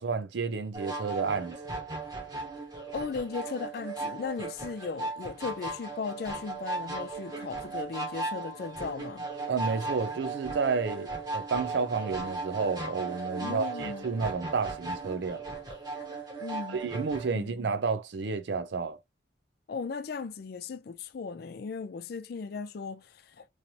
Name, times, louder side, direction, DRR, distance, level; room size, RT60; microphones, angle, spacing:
voice 1, 0.0-1.6 9.5-15.4 16.7-19.0, right 5 dB, 75° right, 0.5 m, -31 dB
sound 1, 0.7-17.3, right 3 dB, 20° right, 1.0 m, -37 dB
voice 2, 2.9-9.3 13.4-14.0 16.4-16.8 17.3-17.6 19.7-23.4, left 5 dB, 60° left, 0.4 m, -37 dB
3.2 x 2.7 x 2.7 m
head